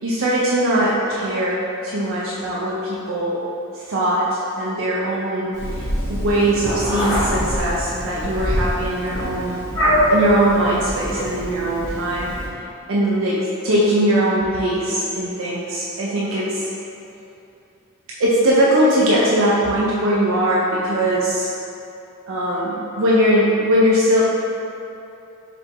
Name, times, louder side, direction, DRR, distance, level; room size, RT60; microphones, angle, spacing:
voice 1, 0.0-3.4 3.7-9.6 10.1-12.3 12.9-16.7 18.2-21.5 22.3-24.2, right 1 dB, 65° right, -6 dB, 0.5 m, -20 dB
Meow, 5.5-12.4, equal, 20° left, 1.3 m, -23 dB
4.8 x 2.9 x 3.4 m, 2.8 s
head